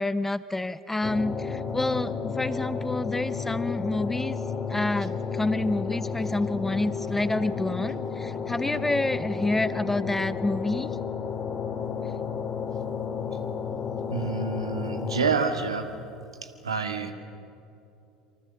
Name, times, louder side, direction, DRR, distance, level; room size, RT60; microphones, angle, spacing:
voice 1, 0.0-4.4 4.7-10.9, left 2 dB, 10° left, 15 dB, 0.8 m, -28 dB
sound 1, 1.0-15.4, left 6 dB, 35° left, 2.9 m, -32 dB
voice 2, 14.1-15.9 16.4-17.1, right 5 dB, 80° right, 5 dB, 2.0 m, -28 dB
27.0 x 25.0 x 6.9 m, 2.7 s
figure-of-eight pair, 70°, 3 cm